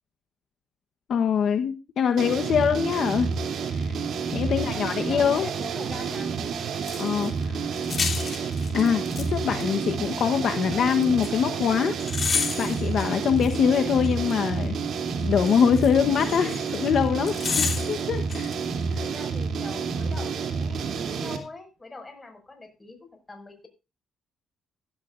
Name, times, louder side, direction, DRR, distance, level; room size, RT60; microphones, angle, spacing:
voice 1, 1.1-3.3 3.7-3.9 4.3-5.5 7.0-7.8 8.7-11.9 12.6-14.8 15.2-18.5 18.9-19.0, left 7 dB, 65° left, 6 dB, 1.1 m, -24 dB
sound 1, 2.2-21.4, right 5 dB, 65° right, 2.9 m, -29 dB
voice 2, 4.4-6.4 17.5-17.9 18.6-23.7, left 3 dB, 20° left, 5 dB, 5.8 m, -43 dB
sound 2, 6.8-7.3 7.8-9.3 9.6-9.7 11.0-11.3 12.0-14.3 15.4-16.9 17.3-18.5 18.8-18.9, left 5 dB, 40° left, 3.6 m, -30 dB
16.0 x 12.5 x 2.5 m, 0.30 s
cardioid pair, 90°, 0 cm